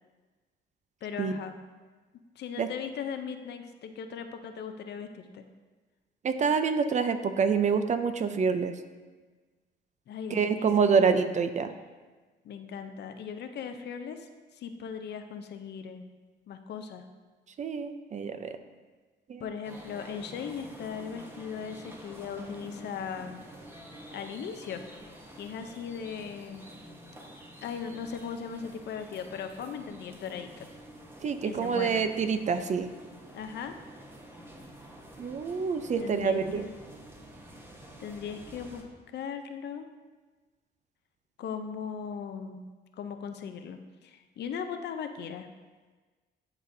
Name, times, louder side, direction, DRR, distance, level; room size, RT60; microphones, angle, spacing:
voice 1, 1.0-1.6 2.4-5.4 10.1-11.2 12.4-16.1 16.5-17.0 19.4-23.4 24.1-24.8 25.4-26.6 27.6-30.7 31.4-32.1 33.3-33.8 36.0-36.7 38.0-39.9 41.4-42.6 43.0-45.5, left 7 dB, 65° left, 7 dB, 0.6 m, -38 dB
voice 2, 6.2-8.7 10.3-11.7 17.6-18.5 19.3-19.4 31.2-32.9 35.2-36.7, right 5 dB, 40° right, 9 dB, 0.5 m, -27 dB
sound 1, 19.6-38.8, right 1 dB, 10° right, 0.9 m, -48 dB
11.0 x 4.1 x 2.6 m, 1.3 s
cardioid pair, 95°, 19 cm